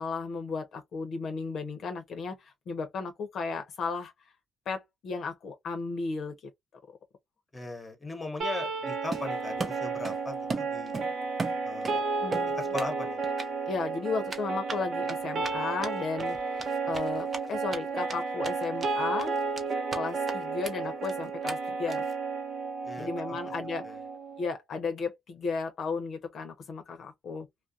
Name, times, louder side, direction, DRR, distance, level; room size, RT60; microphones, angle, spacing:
voice 1, 0.0-4.1 4.7-6.4 12.2-12.6 13.7-19.4 19.9-22.0 23.0-24.0 24.4-27.5, left 4 dB, 65° left, 0.7 m, -34 dB
voice 2, 7.5-11.0 11.6-12.0 12.5-13.2 22.8-23.4 23.8-24.0, left 2 dB, 20° left, 1.0 m, -38 dB
sound 1, 8.4-24.4, right 4 dB, 60° right, 0.9 m, -32 dB
Run, 9.1-10.2 10.5-12.0 12.3-12.9 13.2-13.5 14.3-17.8 18.1-18.2 18.4-18.9 19.2-20.0 20.3-20.4 20.6-20.7 21.0-21.1 21.5-21.6 21.9-22.1, right 3 dB, 35° right, 0.7 m, -37 dB
2.4 x 2.1 x 2.6 m
cardioid pair, 90°, 0 cm